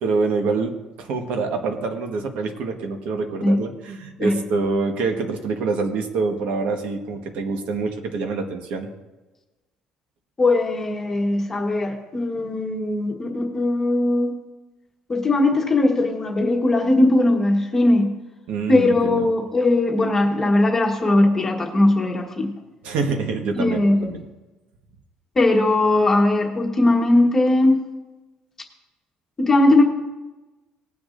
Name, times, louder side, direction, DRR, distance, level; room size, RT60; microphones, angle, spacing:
voice 1, 0.0-8.9 18.5-19.3 22.8-24.2, right 4 dB, 65° right, 4 dB, 1.4 m, -26 dB
voice 2, 10.4-14.3 15.1-18.1 18.7-22.5 23.5-24.1 25.3-27.8 29.4-29.8, left 2 dB, 15° left, 2 dB, 1.3 m, -19 dB
19.0 x 9.6 x 2.6 m, 1.1 s
cardioid pair, 175°, 2 cm